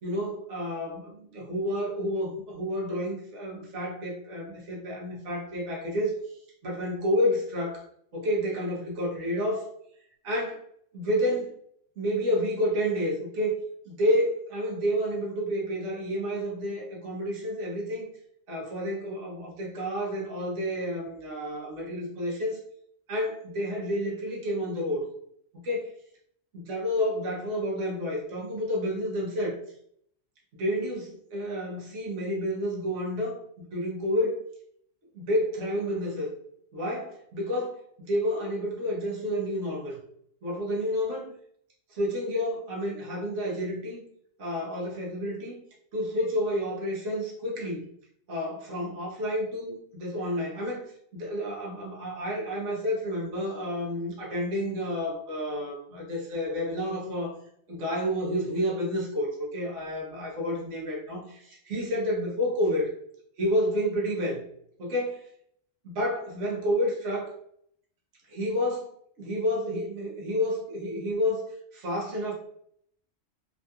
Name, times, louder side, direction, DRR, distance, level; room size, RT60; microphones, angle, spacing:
voice 1, 0.0-6.1 6.6-7.8 8.1-9.7 10.2-10.6 10.9-11.6 12.0-13.6 13.9-18.1 18.5-22.6 23.1-25.1 25.5-25.9 26.5-29.6 30.5-34.4 35.1-36.3 36.7-40.0 40.4-41.3 41.9-44.0 44.4-45.6 45.9-47.9 48.3-50.8 51.1-57.3 57.7-62.9 63.4-64.4 64.8-65.3 65.8-67.3 68.3-72.3, equal, 75° right, -3 dB, 1.3 m, -30 dB
3.7 x 2.7 x 2.2 m, 0.67 s
omnidirectional pair, 1.3 m